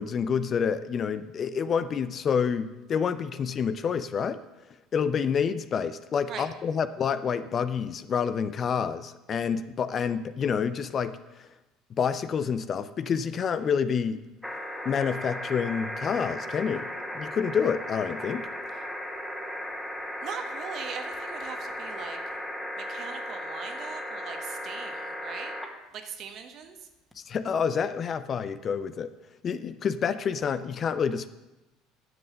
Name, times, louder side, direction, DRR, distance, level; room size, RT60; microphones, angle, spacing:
voice 1, 0.0-4.4 4.9-11.2 12.0-14.2 14.8-18.4 27.2-29.1 29.4-31.3, left 6 dB, 35° left, 13 dB, 0.6 m, -28 dB
sound 1, 14.4-25.7 27.1-27.2, left 1 dB, 5° left, 1.8 m, -36 dB
voice 2, 20.2-22.2 22.9-25.5 25.9-26.7, right 7 dB, 45° right, 6 dB, 1.3 m, -40 dB
11.0 x 7.7 x 6.8 m, 1.0 s
figure-of-eight pair, 65°, 0 cm